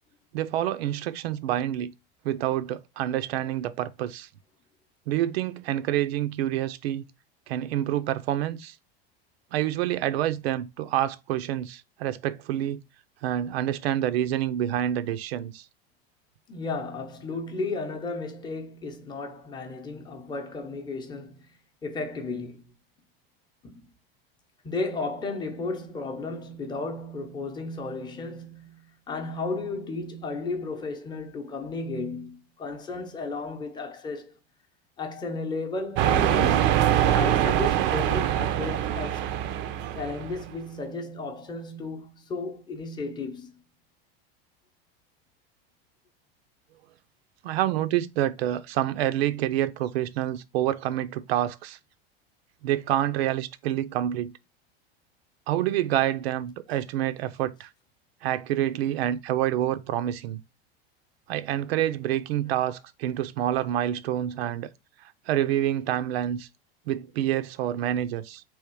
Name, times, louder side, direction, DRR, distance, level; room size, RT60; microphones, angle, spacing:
voice 1, 0.3-1.9 2.2-4.3 5.1-7.0 7.5-8.7 9.5-12.8 13.2-15.6 47.4-51.8 52.6-54.3 55.5-57.7 58.2-60.4 61.3-64.7 65.3-66.5 66.9-68.4, right 12 dB, 90° right, 0.5 m, -27 dB
voice 2, 16.5-22.6 23.6-23.9 24.6-34.3 35.0-39.3 40.0-43.5, left 3 dB, 15° left, 0.7 m, -34 dB
sound 1, 36.0-40.5, right 11 dB, 40° right, 0.4 m, -24 dB
3.5 x 2.9 x 4.5 m
supercardioid pair, 135°, 30 cm